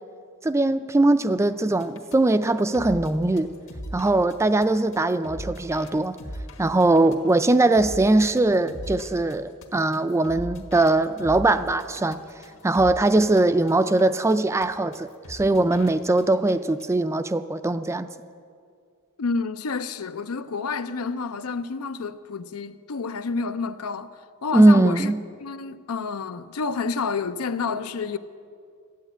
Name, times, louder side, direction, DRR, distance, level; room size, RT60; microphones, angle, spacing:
voice 1, 0.4-3.5 3.9-6.2 6.6-12.2 12.6-18.1 24.5-25.2, right 2 dB, 15° right, 0.3 m, -21 dB
sound 1, 1.8-13.4 13.7-14.0 14.3-14.4 14.6-14.7 14.9-15.0 15.2-15.9 16.2-16.5 16.8-16.9, equal, 65° left, 1.6 m, -40 dB
voice 2, 19.2-24.1 24.4-25.1 25.4-28.2, left 4 dB, 80° left, 0.6 m, -29 dB
13.0 x 8.9 x 9.0 m
head